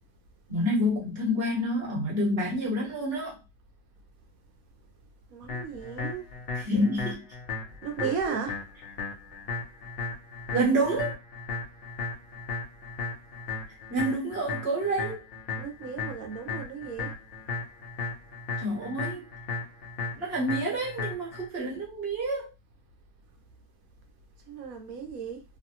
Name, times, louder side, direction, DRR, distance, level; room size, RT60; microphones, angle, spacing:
voice 1, 0.5-3.4 6.5-7.2 8.0-8.4 10.5-11.1 13.9-15.2 18.6-19.3 20.2-22.5, right 1 dB, 40° right, 1.1 m, -28 dB
voice 2, 5.3-6.2 7.8-8.6 15.6-17.1 24.5-25.4, right 6 dB, 65° right, 0.9 m, -35 dB
sound 1, 5.5-21.5, left 4 dB, 50° left, 0.7 m, -36 dB
3.1 x 2.2 x 2.8 m
omnidirectional pair, 1.8 m